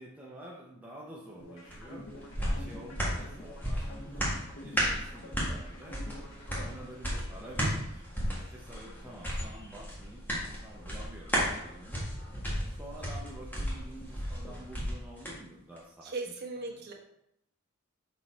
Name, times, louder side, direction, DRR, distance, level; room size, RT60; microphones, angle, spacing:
voice 1, 0.0-6.0 6.5-12.3 12.6-16.9, right 1 dB, 10° right, -4 dB, 0.6 m, -49 dB
sound 1, 1.4-7.4, left 1 dB, 70° left, 1.3 m, -48 dB
sound 2, 1.7-15.4 15.8-15.9, equal, 10° left, 1.5 m, -34 dB
voice 2, 16.0-16.9, right 3 dB, 50° right, -1 dB, 1.2 m, -38 dB
6.3 x 4.0 x 4.3 m, 0.79 s
head